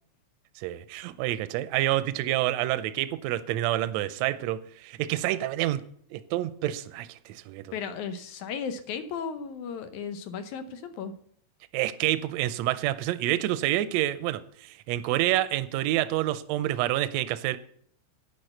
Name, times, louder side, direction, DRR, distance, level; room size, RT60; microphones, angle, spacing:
voice 1, 0.6-5.8 6.1-7.7 11.7-17.6, right 14 dB, 80° right, 13 dB, 1.7 m, -28 dB
voice 2, 7.7-11.1, left 6 dB, 85° left, 9 dB, 2.4 m, -35 dB
11.0 x 5.2 x 7.7 m, 0.64 s
omnidirectional pair, 3.3 m